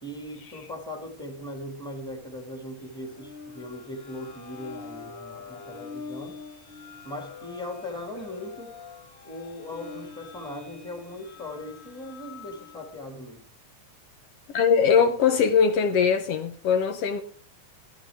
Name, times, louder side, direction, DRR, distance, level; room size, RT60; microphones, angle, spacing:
voice 1, 0.0-6.4 7.0-8.8 9.2-13.4, left 1 dB, ahead, 1.6 m, -39 dB
sound 1, 2.7-13.0, left 5 dB, 40° left, 3.2 m, -45 dB
voice 2, 14.5-17.2, left 6 dB, 70° left, 1.7 m, -21 dB
13.5 x 11.5 x 3.5 m
omnidirectional pair, 3.3 m